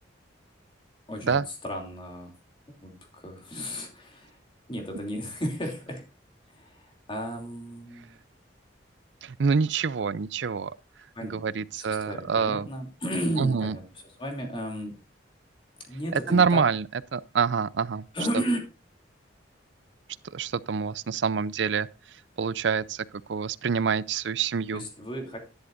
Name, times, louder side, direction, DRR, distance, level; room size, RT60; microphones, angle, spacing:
voice 1, 1.1-2.3 2.7-4.4 4.7-6.0 6.5-8.1 11.1-11.4 11.7-15.0 15.9-16.6 18.1-18.6 24.7-25.4, equal, 25° left, 2.8 m, -34 dB
voice 2, 9.2-10.7 11.3-12.7 13.4-13.8 16.1-16.8 17.1-18.0 20.3-21.9 22.4-24.8, right 5 dB, 70° right, 0.5 m, -26 dB
11.0 x 10.5 x 2.5 m
head